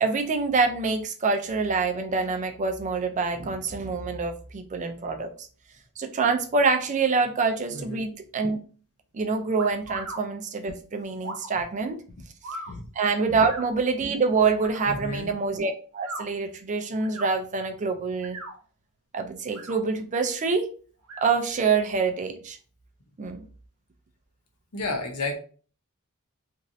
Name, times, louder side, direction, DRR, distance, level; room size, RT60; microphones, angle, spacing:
voice 1, 0.0-5.3 6.0-8.6 9.1-12.0 13.0-18.4 19.1-20.7 21.2-22.6 23.2-23.4, right 4 dB, 35° right, 6 dB, 0.4 m, -26 dB
voice 2, 7.7-8.0 12.7-12.8 13.3-13.4 14.9-15.3 24.7-25.4, left 2 dB, 80° left, 4 dB, 0.7 m, -31 dB
sound 1, 9.6-10.2 11.2-11.5 12.4-12.7 13.5-13.7 14.6-14.8 15.9-16.2 17.0-17.3 18.1-18.6 19.4-19.8 21.0-21.3, right 2 dB, 80° right, 0.8 m, -38 dB
3.1 x 2.6 x 2.6 m, 0.40 s
head